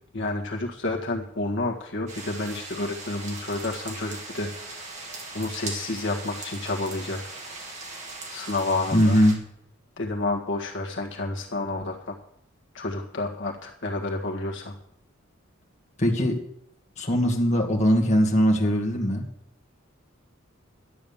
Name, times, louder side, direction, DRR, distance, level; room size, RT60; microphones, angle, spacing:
voice 1, 0.1-4.5 5.3-7.3 8.3-9.2 10.0-12.1 12.7-14.7, left 2 dB, 60° left, 0 dB, 1.7 m, -30 dB
sound 1, 2.1-9.3, right 3 dB, 35° right, 2.6 m, -39 dB
voice 2, 8.9-9.4 16.0-16.4 17.0-19.3, equal, 35° left, 1 dB, 2.0 m, -21 dB
11.5 x 8.9 x 7.2 m, 0.73 s
head